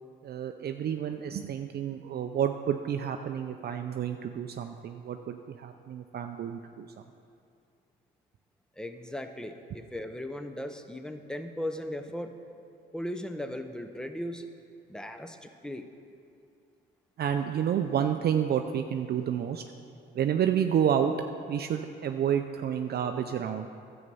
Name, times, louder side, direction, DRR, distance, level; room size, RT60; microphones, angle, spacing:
voice 1, 0.2-6.9 17.2-19.6 20.1-21.1 21.5-23.7, right 9 dB, 55° right, 6 dB, 0.5 m, -29 dB
voice 2, 8.8-12.4 12.9-14.4 14.9-15.8, left 1 dB, 5° left, 7 dB, 0.7 m, -37 dB
11.0 x 7.9 x 5.4 m, 2.4 s
cardioid pair, 90°, 20 cm